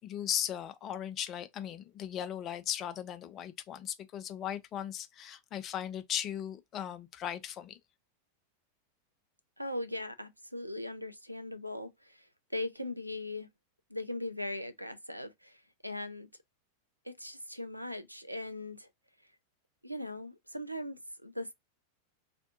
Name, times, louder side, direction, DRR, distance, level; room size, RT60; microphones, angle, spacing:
voice 1, 0.0-7.8, left 10 dB, 30° left, 0.5 m, -37 dB
voice 2, 9.6-13.5 13.9-16.3 17.0-18.9 19.8-21.5, left 1 dB, 90° right, 0.4 m, -39 dB
3.4 x 2.5 x 2.5 m
figure-of-eight pair, 90°, 0 cm